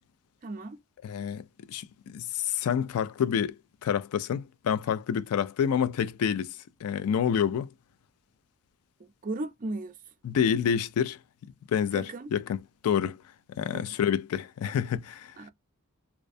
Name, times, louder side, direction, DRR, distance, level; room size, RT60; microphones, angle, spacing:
voice 1, 0.4-0.8 9.0-9.9 11.9-12.3 13.7-13.9 15.4-15.5, right 2 dB, 35° right, 0.4 m, -36 dB
voice 2, 1.0-7.7 10.2-11.2 11.7-12.6 12.8-13.2 13.5-15.3, left 8 dB, 75° left, 0.3 m, -28 dB
2.4 x 2.2 x 2.5 m
head